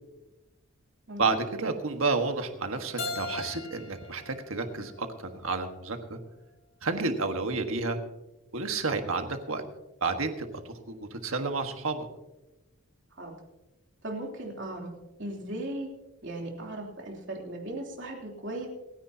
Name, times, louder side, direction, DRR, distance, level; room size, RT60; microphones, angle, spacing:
voice 1, 1.2-6.2 6.8-8.0 8.5-9.6 10.0-12.1, right 3 dB, 75° right, 6 dB, 1.5 m, -30 dB
Keyboard (musical), 3.0-5.8, left 3 dB, 65° left, 3.4 m, -40 dB
voice 2, 14.0-14.9 15.2-15.9 16.2-18.7, right 1 dB, 55° right, -1 dB, 3.2 m, -37 dB
27.0 x 10.0 x 2.8 m, 1.0 s
head